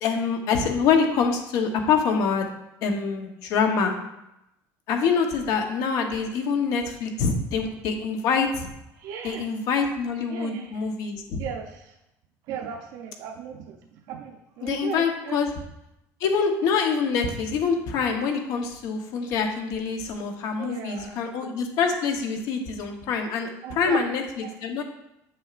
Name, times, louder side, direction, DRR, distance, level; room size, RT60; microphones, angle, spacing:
voice 1, 0.0-2.5 2.8-3.9 4.9-8.7 9.2-11.4 14.6-15.5 16.2-24.2 24.6-24.8, left 5 dB, 60° left, 4 dB, 1.0 m, -25 dB
voice 2, 9.0-9.6 10.3-10.9 11.4-11.9 12.5-15.5 20.6-21.2 23.6-24.1 24.4-24.5, right 7 dB, 65° right, 1 dB, 0.6 m, -37 dB
8.3 x 6.2 x 2.5 m, 0.86 s
cardioid pair, 160°, 7 cm